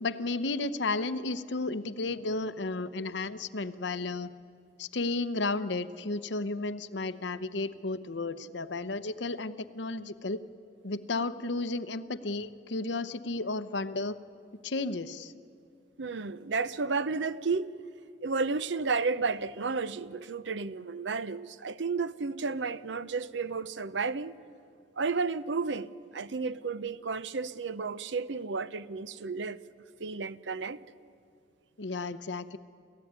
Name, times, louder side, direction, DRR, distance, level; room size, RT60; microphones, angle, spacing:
voice 1, 0.0-4.3 4.8-10.4 10.8-14.1 14.6-15.3 31.8-32.6, left 3 dB, 75° left, 0.9 m, -33 dB
voice 2, 16.0-17.7 18.2-24.3 25.0-29.6 30.0-30.8, right 4 dB, 80° right, 0.7 m, -32 dB
29.0 x 14.5 x 9.5 m
head